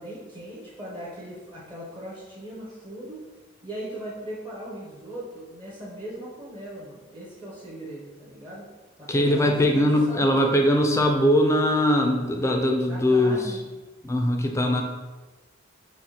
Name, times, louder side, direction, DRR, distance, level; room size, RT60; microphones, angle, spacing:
voice 1, 0.0-3.2 3.6-8.6 9.0-10.5 12.8-13.6, right 1 dB, 25° right, -6 dB, 0.7 m, -39 dB
voice 2, 9.1-13.5 14.0-14.8, left 1 dB, 15° left, 2 dB, 0.4 m, -21 dB
5.8 x 2.1 x 2.8 m, 1.2 s
head